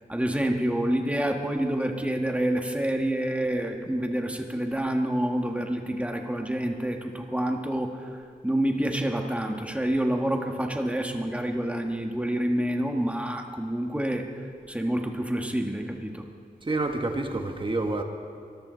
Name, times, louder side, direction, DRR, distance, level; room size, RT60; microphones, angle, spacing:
voice 1, 0.1-8.1 8.4-14.3 14.7-16.2, right 1 dB, 10° right, 3 dB, 1.5 m, -27 dB
voice 2, 16.6-18.0, right 2 dB, 30° right, 4 dB, 1.5 m, -28 dB
23.5 x 14.0 x 4.0 m, 2.4 s
wide cardioid pair, 100°, 16 cm